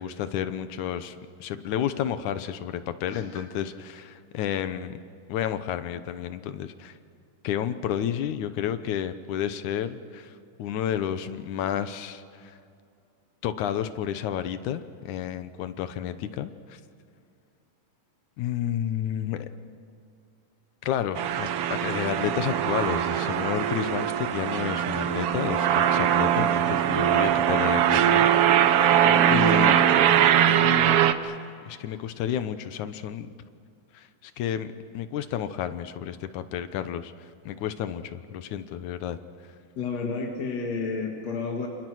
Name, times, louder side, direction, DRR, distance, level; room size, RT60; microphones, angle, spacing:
voice 1, 0.0-5.0 5.3-7.0 7.4-12.6 13.4-16.8 18.4-19.5 20.8-28.3 28.8-29.0 29.3-29.8 30.5-31.4 31.6-33.3 33.9-34.7 34.9-39.2, left 10 dB, 70° left, 11 dB, 2.3 m, -31 dB
sound 1, 21.2-31.1, right 10 dB, 70° right, 1.4 m, -21 dB
voice 2, 29.0-29.4 39.8-41.7, left 4 dB, 55° left, 0 dB, 3.1 m, -31 dB
29.0 x 26.5 x 6.3 m, 2.5 s
omnidirectional pair, 3.7 m